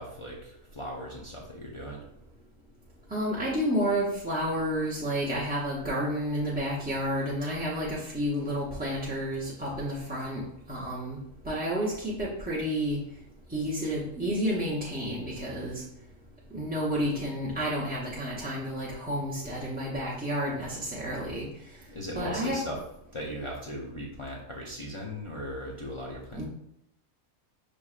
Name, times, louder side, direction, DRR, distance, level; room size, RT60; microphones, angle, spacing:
voice 1, 0.0-2.0 21.9-22.8 23.1-26.4, equal, 45° left, -3 dB, 0.4 m, -38 dB
voice 2, 3.1-11.2 11.4-13.0 13.5-15.8 16.5-21.5 22.1-22.6 26.3-26.4, equal, 10° right, -7 dB, 0.5 m, -30 dB
5.9 x 3.3 x 2.4 m, 0.78 s
omnidirectional pair, 1.5 m